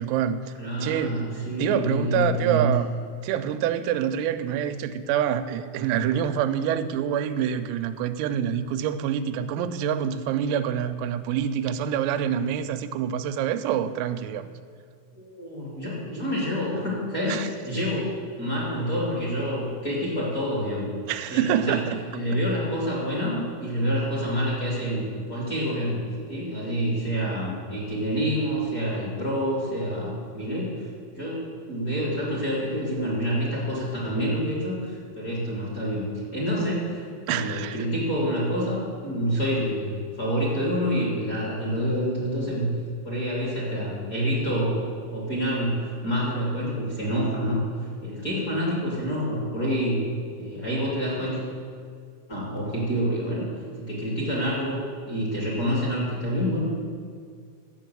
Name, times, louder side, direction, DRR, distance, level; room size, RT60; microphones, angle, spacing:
voice 1, 0.0-0.5 0.8-1.1 1.6-2.9 3.2-14.4 17.3-17.5 21.1-22.0 37.3-37.9, right 9 dB, 90° right, 10 dB, 3.4 m, -26 dB
voice 2, 0.6-2.7 15.1-20.8 21.3-21.8 22.1-26.0 26.3-30.9 31.1-36.0 36.3-42.7 43.0-47.6 48.0-50.1 50.4-51.4 52.3-53.5 53.8-56.7, equal, 30° left, -6 dB, 1.6 m, -27 dB
12.0 x 7.9 x 7.6 m, 2.2 s
omnidirectional pair, 5.9 m